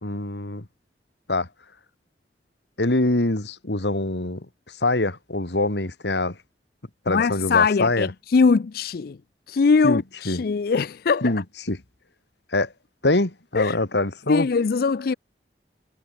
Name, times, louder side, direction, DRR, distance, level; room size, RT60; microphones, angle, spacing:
voice 1, 0.0-0.7 1.3-1.5 2.8-4.5 4.8-6.4 7.1-8.1 9.8-10.4 11.2-11.8 12.5-12.7 13.0-14.5, left 2 dB, 75° left, 2.1 m, -24 dB
voice 2, 7.1-9.2 9.5-11.3 13.6-13.8 14.3-15.1, left 5 dB, 55° left, 0.4 m, -21 dB
head